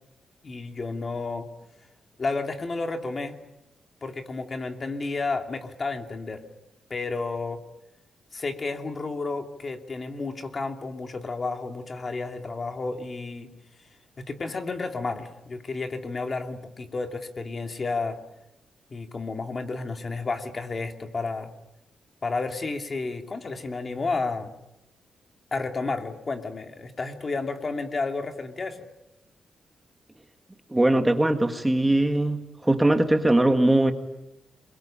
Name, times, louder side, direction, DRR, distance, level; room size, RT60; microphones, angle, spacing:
voice 1, 0.4-1.5 2.2-3.4 4.0-6.4 6.9-7.6 8.3-13.5 14.2-18.2 18.9-21.5 22.2-24.5 25.5-28.8, left 3 dB, 35° left, 5 dB, 2.7 m, -31 dB
voice 2, 30.7-33.9, right 1 dB, 10° right, 6 dB, 1.7 m, -21 dB
28.0 x 22.5 x 8.8 m, 0.89 s
wide cardioid pair, 135°, 0 cm